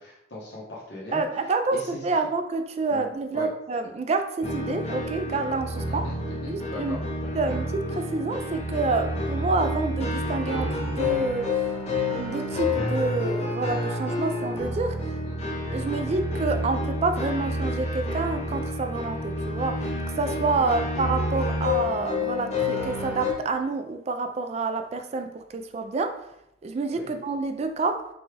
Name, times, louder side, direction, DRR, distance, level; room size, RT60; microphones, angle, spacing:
voice 1, 0.0-1.2 1.7-2.0 2.9-3.0 3.3-3.5 5.9-7.0 7.3-7.4 15.2-15.4 15.8-16.0 20.5-20.7 26.9-27.1, left 2 dB, 65° left, -6 dB, 1.0 m, -39 dB
voice 2, 1.1-6.1 6.4-7.0 7.3-11.5 12.1-15.1 15.7-19.9 20.2-26.3 26.6-28.1, right 3 dB, 35° right, 7 dB, 0.3 m, -28 dB
sound 1, 4.4-23.3, left 2 dB, 35° left, 0.7 m, -29 dB
5.2 x 2.3 x 3.3 m, 0.81 s
head